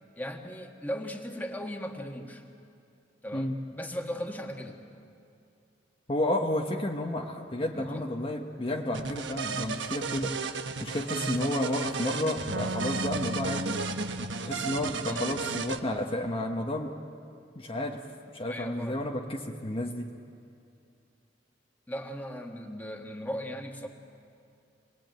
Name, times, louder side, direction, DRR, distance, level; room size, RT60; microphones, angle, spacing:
voice 1, 0.1-2.4 3.2-4.8 7.7-8.0 15.1-15.3 18.4-19.1 21.9-23.9, equal, 10° left, 2 dB, 1.8 m, -37 dB
voice 2, 6.1-10.3 10.8-13.8 14.4-17.0 17.5-18.0 18.3-20.1, left 1 dB, 30° left, 0 dB, 1.2 m, -31 dB
sound 1, 8.9-15.8, right 4 dB, 85° right, 1.1 m, -34 dB
sound 2, 12.5-16.0, equal, 65° right, 1.4 m, -38 dB
27.0 x 20.5 x 9.1 m, 2.5 s
head